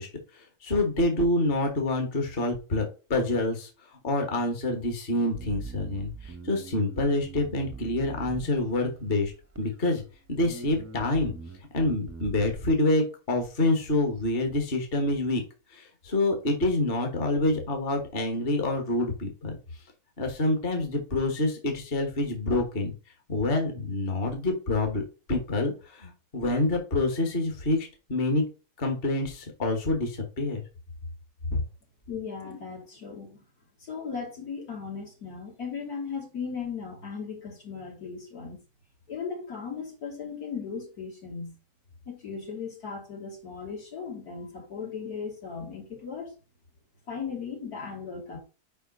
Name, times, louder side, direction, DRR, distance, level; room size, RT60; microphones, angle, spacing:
voice 1, 0.0-2.8 3.1-10.0 10.3-11.3 11.7-15.4 15.7-19.6 20.2-22.9 23.3-25.0 25.3-28.4 28.8-30.6 31.5-31.6, left 2 dB, 40° left, 4 dB, 1.5 m, -27 dB
Bass guitar, 5.3-8.9 9.5-10.1 10.4-12.5, right 4 dB, 15° right, 0.5 m, -42 dB
voice 2, 32.1-33.4 33.8-38.6 39.1-41.5 42.1-46.3 47.1-48.4, left 5 dB, 80° left, -1 dB, 3.3 m, -37 dB
5.0 x 4.9 x 5.3 m, 0.34 s
omnidirectional pair, 1.6 m